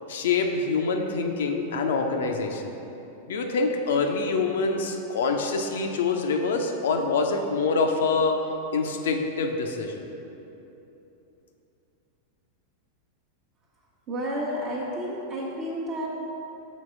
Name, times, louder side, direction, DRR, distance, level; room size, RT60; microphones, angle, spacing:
voice 1, 0.1-2.7 3.3-8.4 8.7-10.1, left 4 dB, 60° left, 3 dB, 0.5 m, -25 dB
voice 2, 14.1-16.1, equal, 35° right, -5 dB, 0.9 m, -31 dB
6.3 x 4.3 x 5.6 m, 3.0 s
figure-of-eight pair, 90°, 0 cm